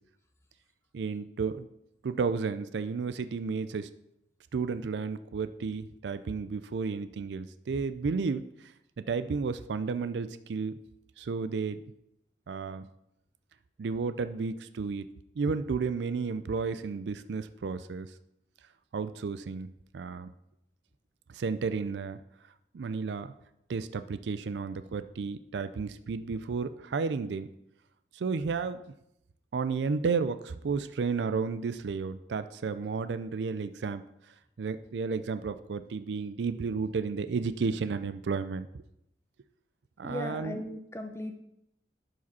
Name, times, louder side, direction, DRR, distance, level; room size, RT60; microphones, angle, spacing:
voice 1, 0.9-1.7 2.0-3.9 4.5-10.7 11.2-11.8 12.5-12.9 13.8-15.1 15.4-18.1 18.9-20.3 21.3-22.2 22.7-23.3 23.7-27.5 28.1-28.8 29.5-34.0 34.6-38.8 40.0-40.6, right 5 dB, 85° right, 12 dB, 0.4 m, -32 dB
voice 2, 40.0-41.4, left 1 dB, 15° left, 6 dB, 0.6 m, -37 dB
11.5 x 5.0 x 4.1 m, 0.81 s
head